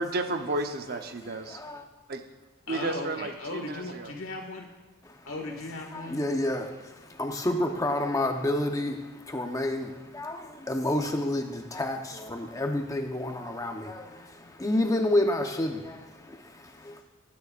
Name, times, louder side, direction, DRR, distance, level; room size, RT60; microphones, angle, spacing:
voice 1, 0.0-1.6 2.1-2.2 2.7-4.1, right 2 dB, 50° right, 6 dB, 0.9 m, -32 dB
voice 2, 1.2-1.8 5.0-5.2 5.9-17.0, left 1 dB, 15° left, 4 dB, 0.9 m, -30 dB
voice 3, 2.7-4.7 5.3-6.2, left 2 dB, 70° left, 2 dB, 1.9 m, -37 dB
20.0 x 9.4 x 2.5 m, 1.2 s
head